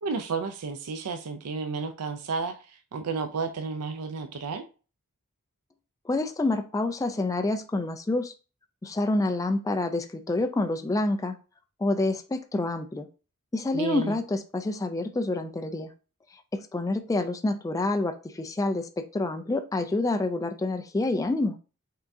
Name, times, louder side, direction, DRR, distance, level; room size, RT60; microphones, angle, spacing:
voice 1, 0.0-4.6 13.7-14.2, right 4 dB, 85° right, 0.5 m, -32 dB
voice 2, 6.1-8.3 8.8-11.4 11.8-13.1 13.5-15.9 16.5-21.5, left 2 dB, 15° left, 0.3 m, -27 dB
5.6 x 3.5 x 2.6 m
head